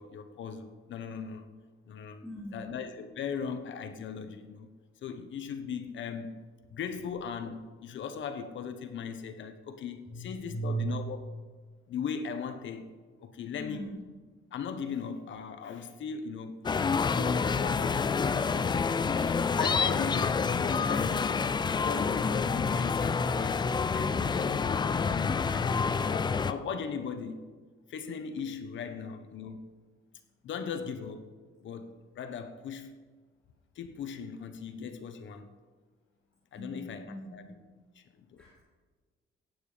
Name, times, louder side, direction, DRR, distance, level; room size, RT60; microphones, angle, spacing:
voice 1, 0.0-1.5 1.9-4.7 5.0-6.4 6.7-11.2 11.9-13.9 14.5-16.7 17.1-21.3 21.7-24.5 24.8-27.5 27.9-29.7 30.4-31.3 31.6-32.9 33.7-35.5 36.5-37.5 37.9-38.4, left 6 dB, 65° left, 8 dB, 1.1 m, -39 dB
voice 2, 2.2-2.7 10.1-10.9 13.6-14.0 24.0-24.4 28.8-28.9 36.6-37.4 38.4-38.6, right 3 dB, 5° left, -6 dB, 2.7 m, -38 dB
sound 1, 16.6-26.5, left 5 dB, 20° left, 0.4 m, -28 dB
15.5 x 9.3 x 5.1 m, 1.4 s
cardioid pair, 165°, 21 cm